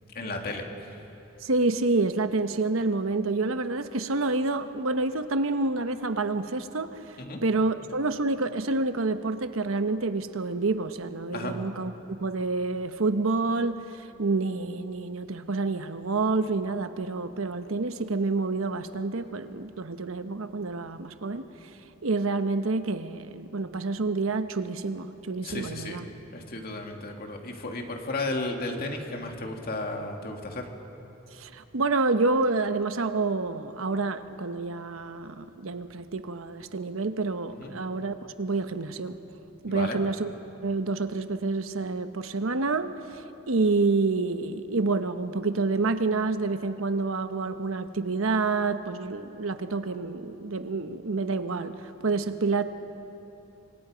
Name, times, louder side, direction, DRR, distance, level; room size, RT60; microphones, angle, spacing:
voice 1, 0.1-0.6 7.2-7.4 11.3-11.5 25.4-26.0 26.3-30.7 37.6-37.7 39.7-40.0, left 2 dB, 50° left, 2 dB, 2.5 m, -34 dB
voice 2, 1.4-7.2 7.4-11.9 12.2-21.4 22.0-26.0 31.4-39.2 39.6-40.3 40.6-52.6, right 3 dB, 80° right, 10 dB, 1.0 m, -28 dB
28.0 x 25.0 x 5.1 m, 3.0 s
head